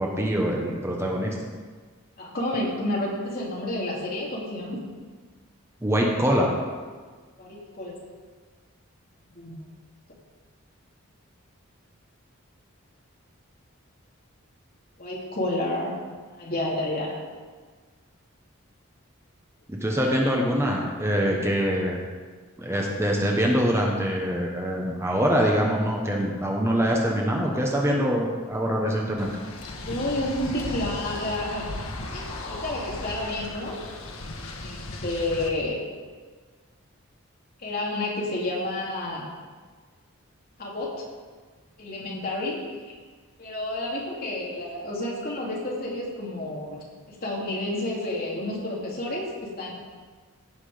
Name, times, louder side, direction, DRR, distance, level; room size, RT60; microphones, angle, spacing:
voice 1, 0.0-1.3 5.8-6.5 19.7-22.0 22.6-29.3, equal, 10° right, -1 dB, 1.1 m, -24 dB
voice 2, 2.2-4.8 7.4-7.9 9.4-9.5 15.0-15.9 16.3-17.1 29.9-31.7 32.1-33.8 34.6-35.8 37.6-39.2 40.6-41.0 41.8-42.9 43.4-46.8 47.1-49.7, left 1 dB, 45° left, -4 dB, 2.8 m, -30 dB
sound 1, 29.2-35.5, left 2 dB, 80° left, 1.2 m, -36 dB
16.0 x 6.1 x 5.1 m, 1.5 s
head